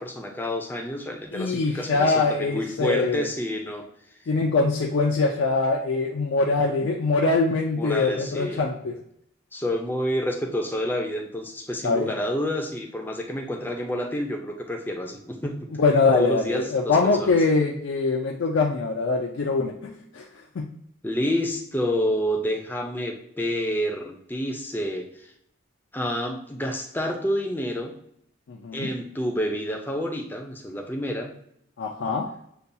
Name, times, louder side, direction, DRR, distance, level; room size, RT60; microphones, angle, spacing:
voice 1, 0.0-3.8 7.8-8.6 9.5-15.6 16.1-17.4 21.0-25.0 25.9-27.9 28.7-31.3, equal, 10° left, 2 dB, 0.5 m, -28 dB
voice 2, 1.3-3.3 4.3-9.0 11.8-12.1 15.8-20.2 20.6-20.7 28.5-28.9 31.8-32.3, left 3 dB, 70° left, 0 dB, 0.4 m, -23 dB
6.7 x 2.3 x 2.7 m, 0.73 s
head